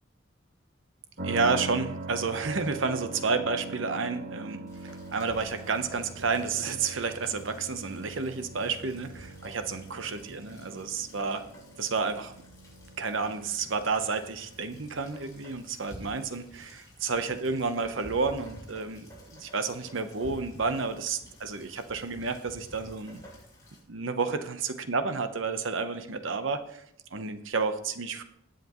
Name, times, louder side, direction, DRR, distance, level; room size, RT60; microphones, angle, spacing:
sound 1, 1.2-15.0, right 3 dB, 60° right, 2.4 m, -42 dB
voice 1, 1.2-11.4 11.8-12.3 13.0-23.2 23.9-26.8 27.1-28.2, right 4 dB, 75° right, 9 dB, 0.9 m, -31 dB
Rain, 4.7-23.8, equal, 20° left, 5.1 m, -51 dB
18.5 x 7.7 x 3.1 m, 0.72 s
head